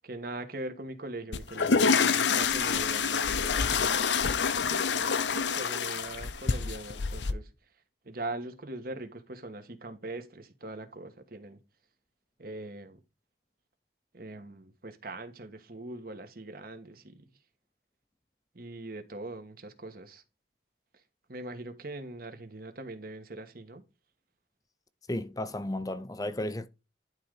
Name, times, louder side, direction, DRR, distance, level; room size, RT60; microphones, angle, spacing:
voice 1, 0.0-4.0 4.7-7.5 8.0-11.6 12.4-13.0 14.1-17.2 18.5-20.2 21.3-23.8, right 2 dB, 55° right, 1.4 m, -41 dB
sound 1, 1.3-7.3, left 5 dB, 90° left, 0.7 m, -27 dB
voice 2, 25.1-26.7, left 1 dB, 20° left, 0.6 m, -33 dB
11.5 x 3.8 x 4.8 m
head